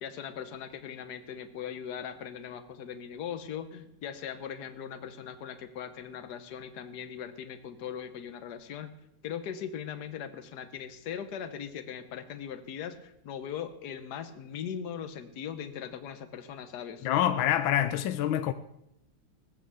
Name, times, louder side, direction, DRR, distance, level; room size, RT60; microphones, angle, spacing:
voice 1, 0.0-8.9 9.2-17.1, left 8 dB, 55° left, 1.5 m, -39 dB
voice 2, 17.0-18.5, left 11 dB, 75° left, 1.4 m, -26 dB
18.5 x 8.0 x 6.9 m
omnidirectional pair, 2.4 m